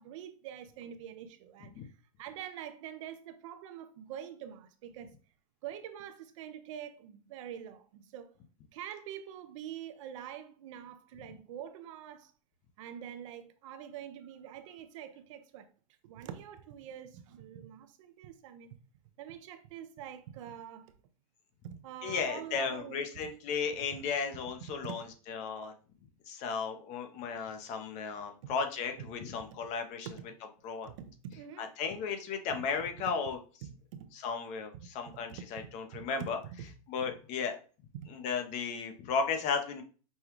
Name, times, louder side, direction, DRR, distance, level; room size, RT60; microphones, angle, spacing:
voice 1, 0.0-1.9 2.2-5.1 5.6-8.3 8.7-12.3 12.8-15.7 16.0-18.7 19.2-20.9 21.6-23.0 23.9-24.0 24.8-25.0 28.4-28.6 30.0-30.1 30.8-31.7 33.9-34.1 34.7-36.7 37.9-38.1, right 9 dB, 60° right, 0.6 m, -45 dB
voice 2, 22.0-25.0 25.3-25.7 26.3-30.1 30.6-30.9 31.6-33.4 34.1-36.4 36.9-37.6 38.1-39.8, left 5 dB, 40° left, 0.8 m, -35 dB
5.4 x 2.3 x 3.0 m
hypercardioid pair, 125°, 18 cm